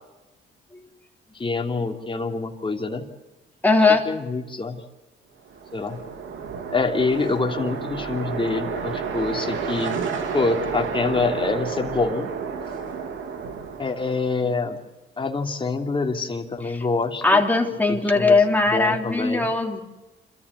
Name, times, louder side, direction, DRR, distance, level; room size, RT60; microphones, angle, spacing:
voice 1, 1.3-3.0 3.9-4.8 5.7-6.0 6.7-9.9 10.3-12.3 13.8-14.8 15.2-17.4 17.9-18.4 18.7-19.5, left 3 dB, 25° left, 3 dB, 3.0 m, -26 dB
voice 2, 3.6-4.1 16.7-16.8 17.2-19.8, left 3 dB, 10° left, 2 dB, 3.5 m, -19 dB
sound 1, 5.5-14.5, right 6 dB, 75° right, 3.1 m, -31 dB
27.0 x 14.0 x 9.9 m, 1.1 s
cardioid pair, 90°, 20 cm